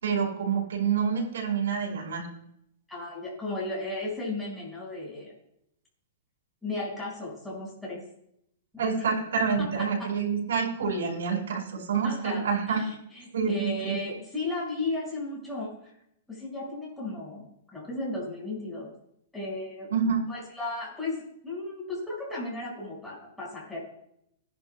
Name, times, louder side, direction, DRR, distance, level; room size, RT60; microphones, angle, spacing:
voice 1, 0.0-2.3 8.8-12.8 13.3-14.0 19.9-20.2, right 6 dB, 90° right, 0 dB, 5.5 m, -27 dB
voice 2, 2.9-5.3 6.6-8.0 8.7-8.9 9.6-10.1 12.0-15.9 16.3-17.4 17.7-18.9 19.3-19.9 20.3-23.8, left 2 dB, 5° left, -6 dB, 5.5 m, -35 dB
18.5 x 11.0 x 2.3 m, 0.75 s
hypercardioid pair, 155°, 0 cm